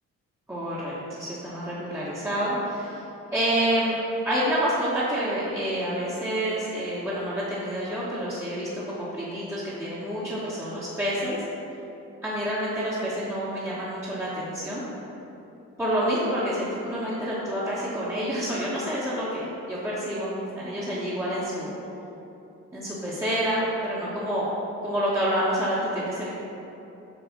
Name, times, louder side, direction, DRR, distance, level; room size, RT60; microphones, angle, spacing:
voice 1, 0.5-3.0 3.3-4.0 4.2-11.4 12.2-14.9 15.8-21.7 22.7-24.5 24.8-26.3, equal, 10° right, -9 dB, 1.3 m, -28 dB
7.0 x 3.4 x 6.0 m, 2.8 s
cardioid pair, 90°, 30 cm